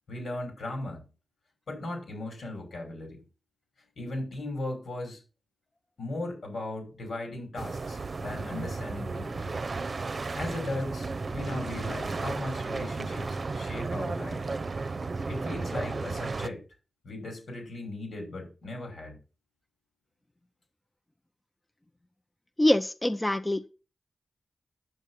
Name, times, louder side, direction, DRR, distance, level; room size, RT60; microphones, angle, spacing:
voice 1, 0.1-1.0 1.7-3.2 4.0-5.2 6.0-9.6 10.3-14.4 15.2-16.6 17.0-19.2, left 2 dB, 90° left, 5.6 m, -37 dB
sound 1, 7.6-16.5, right 3 dB, 55° right, 0.7 m, -34 dB
voice 2, 22.6-23.7, left 1 dB, 20° left, 0.7 m, -24 dB
9.3 x 7.2 x 5.6 m
cardioid pair, 60°, 0 cm